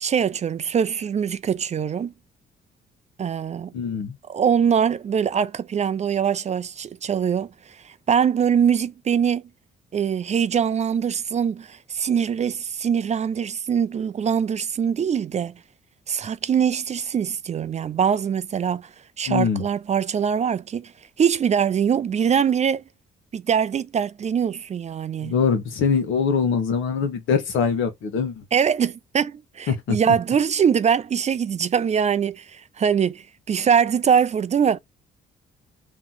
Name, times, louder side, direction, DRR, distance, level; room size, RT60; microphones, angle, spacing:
voice 1, 0.0-2.1 3.2-3.7 4.3-7.5 7.8-9.4 9.9-15.5 16.1-18.9 19.2-20.9 21.2-22.8 23.3-25.3 28.5-34.8, right 7 dB, 35° right, 0.4 m, -23 dB
voice 2, 3.7-4.1 19.3-19.6 25.2-28.4 29.7-30.0, left 6 dB, 80° left, 1.3 m, -23 dB
3.0 x 3.0 x 3.9 m
cardioid pair, 90°, 20 cm